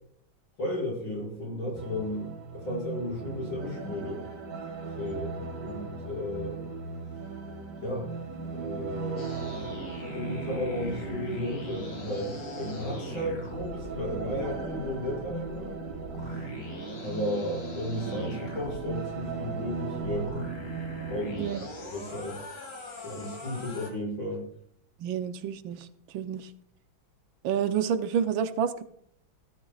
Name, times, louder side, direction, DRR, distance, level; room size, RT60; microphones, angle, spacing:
voice 1, 0.6-4.2 4.9-5.3 5.6-6.6 7.8-8.1 8.5-9.3 10.1-15.7 17.0-20.5 21.1-22.4 23.0-24.5, left 1 dB, 85° left, 6.9 m, -34 dB
sound 1, 1.7-21.5, right 5 dB, 60° right, 2.6 m, -38 dB
sound 2, 3.8-22.4, right 2 dB, 25° left, 4.5 m, -47 dB
sound 3, 9.2-18.9 19.9-23.9, left 1 dB, 45° left, 2.6 m, -42 dB
voice 2, 25.0-25.9 26.1-26.5 27.4-28.8, right 8 dB, 80° right, 1.5 m, -29 dB
17.5 x 12.5 x 2.4 m
omnidirectional pair, 2.1 m